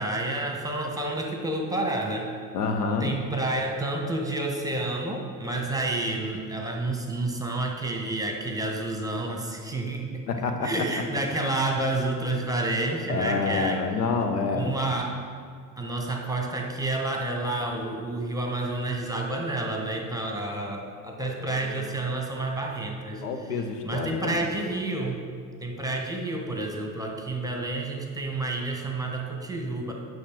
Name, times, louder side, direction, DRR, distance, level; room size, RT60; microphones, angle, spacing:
voice 1, 0.0-2.3 3.0-10.2 10.6-13.8 14.5-15.2 15.8-23.2 23.8-25.2 25.6-29.9, right 2 dB, 5° right, 1 dB, 1.2 m, -29 dB
voice 2, 2.5-3.1 10.3-10.7 13.1-14.7 21.4-21.9 23.2-24.4, left 4 dB, 75° left, 5 dB, 0.8 m, -28 dB
8.7 x 6.1 x 4.6 m, 2.1 s
figure-of-eight pair, 55°, 48 cm